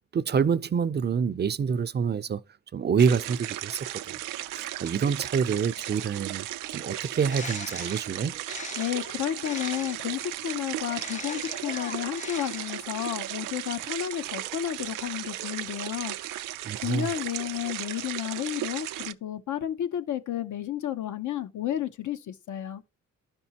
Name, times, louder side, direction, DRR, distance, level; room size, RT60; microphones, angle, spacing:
voice 1, 0.1-2.4 2.7-4.2 4.5-6.5 6.7-8.4 16.6-17.1, right 6 dB, 35° right, 0.5 m, -27 dB
sound 1, 3.0-19.1, right 14 dB, 85° right, 0.5 m, -36 dB
Bird, 7.0-10.1 10.9-13.0, left 5 dB, 25° left, 0.4 m, -42 dB
voice 2, 8.8-16.2 16.8-22.8, left 11 dB, 70° left, 0.8 m, -32 dB
12.0 x 5.3 x 2.9 m
cardioid pair, 65°, 31 cm